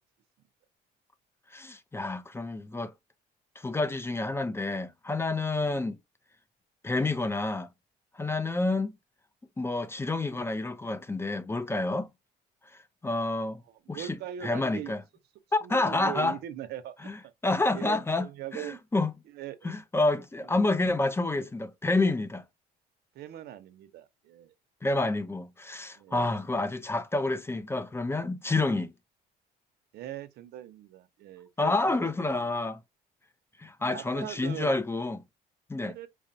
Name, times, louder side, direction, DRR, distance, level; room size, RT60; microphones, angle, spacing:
voice 1, 1.5-2.9 3.6-6.0 6.8-7.7 8.1-8.9 9.6-12.1 13.0-13.6 13.9-14.1 14.4-15.0 15.5-16.4 17.1-17.2 17.4-18.3 18.5-19.1 19.6-22.4 24.8-28.9 31.6-32.8 33.6-35.2 35.7-35.9, left 2 dB, 15° left, 0.4 m, -28 dB
voice 2, 13.7-14.9 15.6-17.3 17.7-18.8 19.3-19.7 20.4-20.6 23.1-24.5 25.9-26.4 29.9-32.1 32.4-32.5 33.8-34.7 35.8-36.1, right 11 dB, 75° right, 0.6 m, -41 dB
4.8 x 2.0 x 2.6 m
cardioid pair, 110°, 17 cm